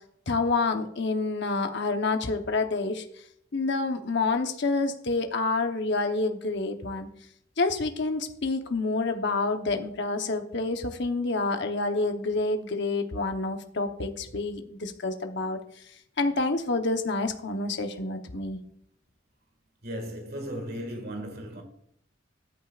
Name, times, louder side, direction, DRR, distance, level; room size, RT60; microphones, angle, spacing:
voice 1, 0.3-3.0 3.5-7.1 7.6-15.6 16.2-18.6, left 3 dB, 60° left, 1.0 m, -28 dB
voice 2, 19.8-21.6, equal, 50° right, 2.0 m, -36 dB
13.5 x 9.3 x 2.5 m
head